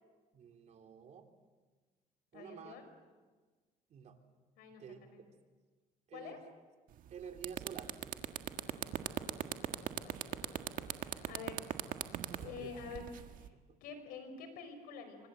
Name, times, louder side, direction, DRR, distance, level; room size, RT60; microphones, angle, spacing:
voice 1, 0.3-1.3 2.3-2.8 3.9-4.2 4.8-5.1 6.1-6.4 7.1-7.9 12.3-12.7 13.5-13.8, right 7 dB, 50° right, 6 dB, 3.2 m, -50 dB
voice 2, 2.3-2.9 4.6-5.2 6.1-6.4 8.6-9.2 10.0-11.8 12.4-13.5 13.8-15.3, left 5 dB, 85° left, 8 dB, 5.5 m, -49 dB
sound 1, 6.9-7.1 7.4-13.5, right 11 dB, 65° right, 1.7 m, -38 dB
28.5 x 25.0 x 7.8 m, 1.4 s
cardioid pair, 125°, 15 cm